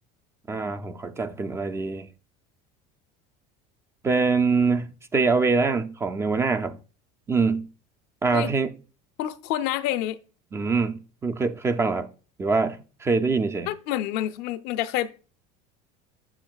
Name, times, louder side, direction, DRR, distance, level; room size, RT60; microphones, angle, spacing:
voice 1, 0.5-2.1 4.0-6.8 7.3-7.7 8.2-8.7 10.5-12.1 12.4-13.7, right 4 dB, 15° right, 0.3 m, -24 dB
voice 2, 9.2-10.2 13.7-15.1, left 13 dB, 60° left, 0.5 m, -28 dB
7.8 x 6.5 x 2.3 m
cardioid pair, 155°, 18 cm